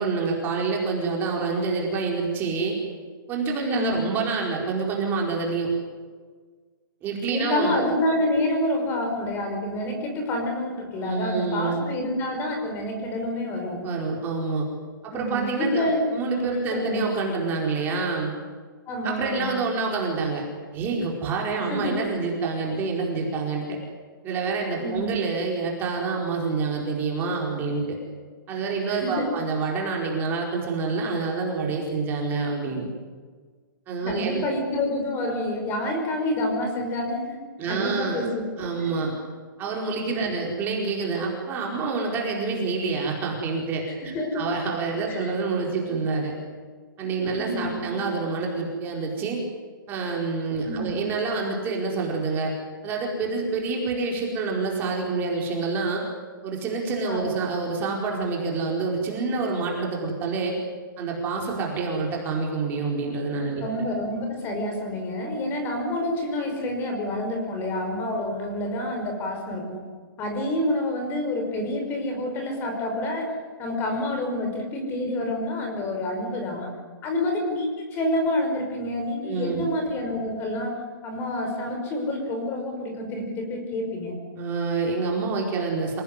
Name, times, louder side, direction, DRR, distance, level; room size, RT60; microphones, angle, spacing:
voice 1, 0.0-2.8 3.3-5.7 7.0-7.8 11.0-11.9 13.8-14.7 15.0-18.3 19.0-20.4 20.7-23.8 24.2-28.0 28.5-32.9 33.9-34.4 37.6-38.3 38.6-39.1 39.6-46.3 47.0-49.4 49.9-52.5 52.8-56.0 56.4-60.6 61.0-63.6 79.2-79.6 84.4-86.0, right 4 dB, 15° right, -1 dB, 4.8 m, -27 dB
voice 2, 3.6-4.4 7.3-13.9 15.1-16.1 16.5-17.1 18.9-19.6 21.6-22.0 24.8-25.2 28.9-29.3 34.0-37.4 37.7-38.4 38.8-39.1 40.1-40.3 44.0-44.5 45.2-45.3 47.3-48.0 50.6-51.1 57.1-57.3 63.6-69.8 70.2-73.3 73.6-76.7 77.0-84.2, left 1 dB, 20° left, 4 dB, 5.4 m, -28 dB
27.0 x 18.5 x 9.9 m, 1.5 s
hypercardioid pair, 160°, 11 cm